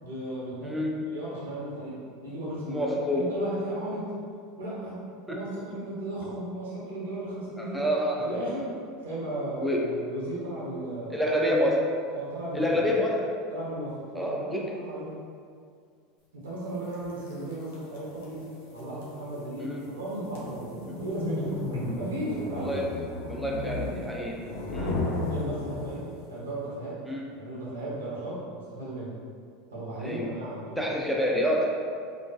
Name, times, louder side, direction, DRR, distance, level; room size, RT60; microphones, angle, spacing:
voice 1, 0.0-4.1 4.6-5.0 5.3-7.8 8.1-8.7 9.0-11.2 12.1-12.8 13.5-15.2 16.3-22.7 25.3-27.0 27.3-29.1 29.7-30.8, right 1 dB, 90° right, -8 dB, 0.8 m, -35 dB
voice 2, 2.7-3.3 5.3-5.4 7.6-8.3 9.6-9.8 11.1-11.8 12.5-13.3 14.1-14.7 19.6-19.8 20.9-21.0 22.6-22.8 23.3-24.4 24.7-25.0 27.1-27.2 30.0-30.3 30.8-31.6, equal, 5° right, -3 dB, 0.4 m, -27 dB
sound 1, 16.9-26.3, left 2 dB, 75° left, 0.5 m, -35 dB
2.5 x 2.3 x 2.3 m, 2.2 s
hypercardioid pair, 95°, 0 cm